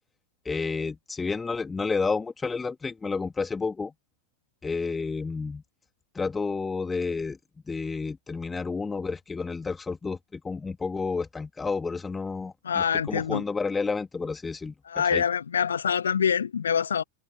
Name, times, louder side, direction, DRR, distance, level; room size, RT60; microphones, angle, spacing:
voice 1, 0.4-3.9 4.6-5.6 6.1-7.4 7.7-15.2, left 4 dB, 15° left, 3.0 m, -30 dB
voice 2, 12.6-13.4 14.9-17.0, left 7 dB, 70° left, 1.3 m, -25 dB
figure-of-eight pair, 90°, 0 cm